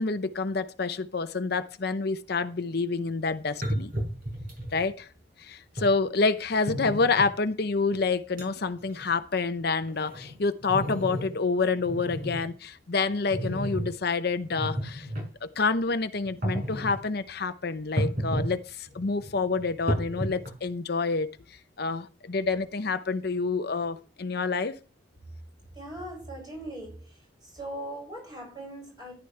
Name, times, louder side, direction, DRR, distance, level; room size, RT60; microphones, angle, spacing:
voice 1, 0.0-3.9 4.7-5.1 5.4-15.1 15.4-24.8, left 4 dB, 55° left, 0.7 m, -28 dB
sound 1, 3.1-3.2 3.6-4.8 5.8-5.9 6.7-7.3 7.9-8.0 8.4-8.5 8.8-9.1 9.6-11.4 11.8-12.5 13.3-13.9 14.4-15.2 16.3-17.0 18.0-18.5 18.9-20.7, equal, 50° right, 6.1 m, -32 dB
voice 2, 25.7-27.1 27.4-29.1, right 1 dB, 20° right, 7.1 m, -39 dB
14.0 x 11.0 x 3.3 m
head